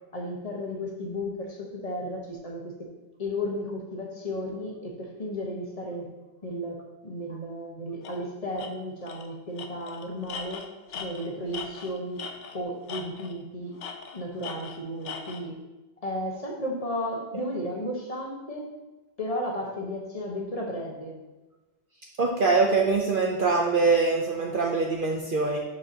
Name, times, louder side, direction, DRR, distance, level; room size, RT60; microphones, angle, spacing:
voice 1, 0.1-2.9 3.2-6.1 6.4-12.3 12.5-13.7 14.1-15.6 16.0-18.7 19.2-21.2, equal, 30° left, -1 dB, 1.3 m, -34 dB
Tools, 8.0-8.2 8.6-8.7 9.1-9.3 9.6-12.6 12.9-13.4 13.8-15.4, left 6 dB, 90° left, 1.0 m, -39 dB
voice 2, 22.2-25.6, right 4 dB, 50° right, -1 dB, 0.8 m, -23 dB
11.0 x 4.6 x 2.8 m, 1.1 s
omnidirectional pair, 1.2 m